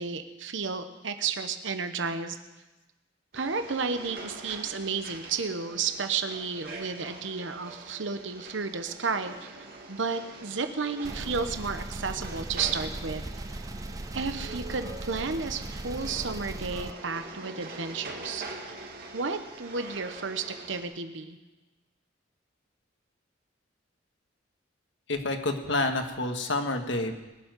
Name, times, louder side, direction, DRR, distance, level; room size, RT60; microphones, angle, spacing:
voice 1, 0.0-2.4 3.3-13.3 14.1-18.5 19.1-21.4, right 5 dB, 70° right, 8 dB, 1.0 m, -32 dB
sound 1, 3.3-20.8, right 3 dB, 50° right, 2.0 m, -44 dB
sound 2, 11.0-16.9, right 2 dB, 20° right, 0.5 m, -38 dB
voice 2, 25.1-27.2, left 2 dB, 65° left, 5 dB, 1.7 m, -29 dB
20.5 x 7.3 x 9.3 m, 1.1 s
head